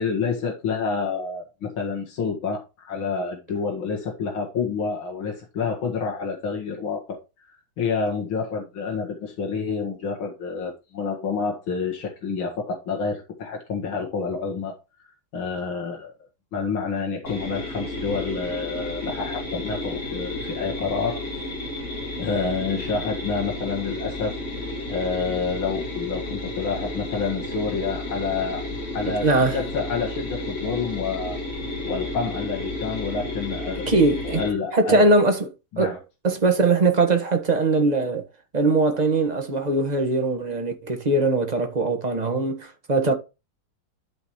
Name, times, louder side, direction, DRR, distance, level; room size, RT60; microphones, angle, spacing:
voice 1, 0.0-7.2 7.8-14.7 15.3-16.1 16.5-21.4 22.2-24.3 24.9-28.7 28.9-31.4 31.9-33.9 34.2-35.1 35.7-36.0, left 5 dB, 90° left, 2.6 m, -28 dB
sound 1, 17.3-34.5, left 2 dB, 35° left, 3.2 m, -32 dB
voice 2, 29.1-29.6 33.9-34.4 34.7-35.5 35.8-36.0 36.2-38.2 38.5-43.1, right 3 dB, 25° right, 1.5 m, -21 dB
12.0 x 5.3 x 3.1 m
omnidirectional pair, 2.2 m